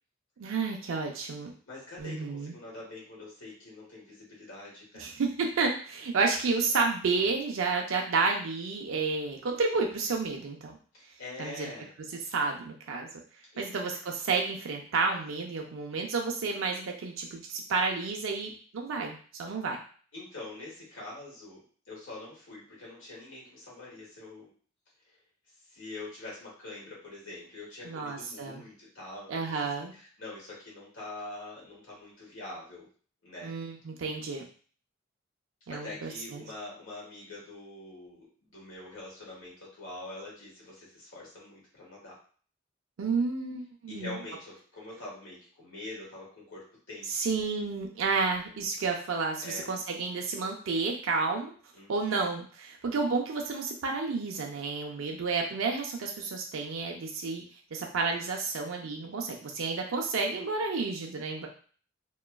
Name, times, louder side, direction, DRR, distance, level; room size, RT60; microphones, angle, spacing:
voice 1, 0.4-1.5 2.0-2.5 5.0-10.8 11.4-11.7 12.3-13.1 13.6-19.8 27.8-28.6 29.3-29.9 33.4-34.5 35.7-36.4 43.0-44.2 47.1-51.5 51.9-57.4 57.7-61.5, right 4 dB, 90° right, 1 dB, 0.4 m, -31 dB
voice 2, 1.7-5.1 10.9-11.9 13.5-13.7 20.1-21.6 21.9-24.5 25.7-29.4 29.9-32.8 33.2-33.5 35.7-42.2 43.9-47.3 49.4-49.7 51.7-52.1, left 2 dB, 85° left, -5 dB, 1.4 m, -44 dB
2.9 x 2.3 x 2.2 m, 0.43 s
head